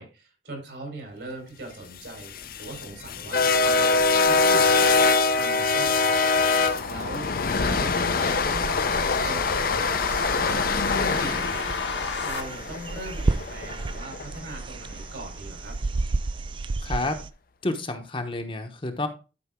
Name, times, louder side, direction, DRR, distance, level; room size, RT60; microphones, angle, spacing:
voice 1, 0.0-6.3 6.6-11.9 12.2-15.7, right 2 dB, 70° right, 2 dB, 4.3 m, -41 dB
sound 1, 2.1-14.3, left 4 dB, 50° left, 0.6 m, -24 dB
sound 2, 4.4-12.4, left 4 dB, 75° left, 1.5 m, -34 dB
sound 3, 8.3-17.3, right 3 dB, 25° right, 0.3 m, -33 dB
voice 2, 16.8-17.2 17.6-19.1, left 2 dB, 30° left, 6 dB, 1.0 m, -29 dB
11.5 x 5.3 x 3.7 m, 0.32 s
head